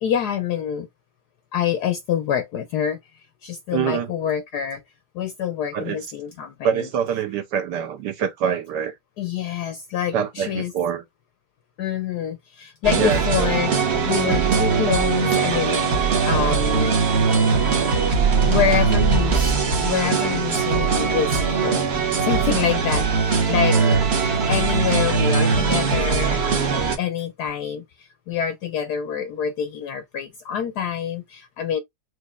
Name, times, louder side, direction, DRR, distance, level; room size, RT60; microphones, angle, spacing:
voice 1, 0.0-0.9 1.5-4.8 5.1-6.9 9.2-10.7 11.8-13.7 14.1-15.8 16.2-17.0 18.5-19.5 19.8-21.9 22.2-23.8 24.5-26.4 26.7-31.8, left 9 dB, 70° left, 0.9 m, -26 dB
voice 2, 3.7-4.1 5.7-6.0 6.6-8.9 10.1-11.0 13.0-13.5 14.2-14.7 17.3-17.5 23.7-24.0, right 8 dB, 70° right, 1.2 m, -25 dB
sound 1, 12.8-27.0, right 5 dB, 50° right, 0.8 m, -20 dB
6.2 x 3.1 x 2.3 m
omnidirectional pair, 2.2 m